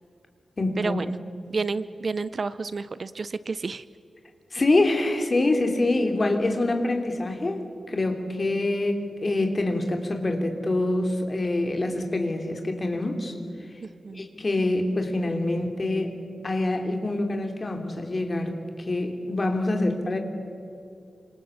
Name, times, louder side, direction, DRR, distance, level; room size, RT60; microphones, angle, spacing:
voice 1, 0.6-1.0 4.5-13.3 14.1-16.1 16.4-20.2, left 2 dB, 30° left, 4 dB, 3.0 m, -25 dB
voice 2, 1.5-3.8 13.8-14.2, right 4 dB, 40° right, 15 dB, 0.5 m, -30 dB
28.5 x 26.5 x 7.1 m, 2.6 s
wide cardioid pair, 160°, 0 cm